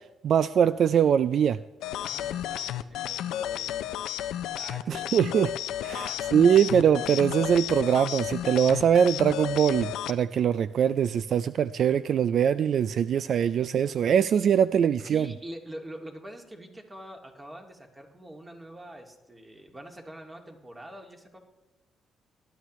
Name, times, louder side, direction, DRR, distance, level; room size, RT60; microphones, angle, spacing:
voice 1, 0.2-1.6 4.9-5.5 5.8-15.3, right 8 dB, 60° right, 15 dB, 0.3 m, -22 dB
sound 1, 1.8-10.1, left 11 dB, 85° left, 0.4 m, -33 dB
voice 2, 2.0-3.9 4.6-5.1 5.9-6.5 15.0-21.4, right 1 dB, 20° right, 2 dB, 2.1 m, -45 dB
18.5 x 11.5 x 3.1 m, 1.1 s
cardioid pair, 90°, 0 cm